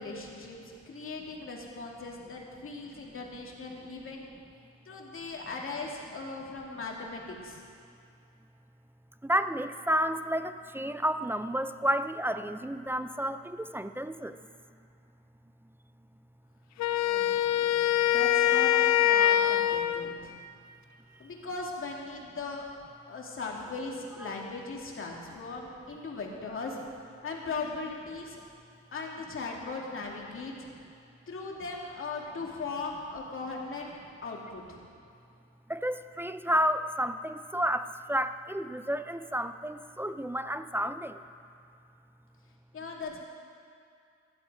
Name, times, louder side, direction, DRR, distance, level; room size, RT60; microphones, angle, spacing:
voice 1, 0.0-4.2 4.8-7.6 17.0-20.3 21.2-26.8 27.2-28.4 28.9-30.7 31.3-33.9 34.2-34.8 42.7-43.2, left 3 dB, 45° left, -1 dB, 2.7 m, -39 dB
voice 2, 9.2-14.4 24.2-24.3 35.7-41.2, equal, 5° right, 11 dB, 0.4 m, -31 dB
Wind instrument woodwind instrument, 16.8-20.2, left 11 dB, 65° left, 0.5 m, -24 dB
15.0 x 12.0 x 5.0 m, 2.4 s
cardioid pair, 90°, 30 cm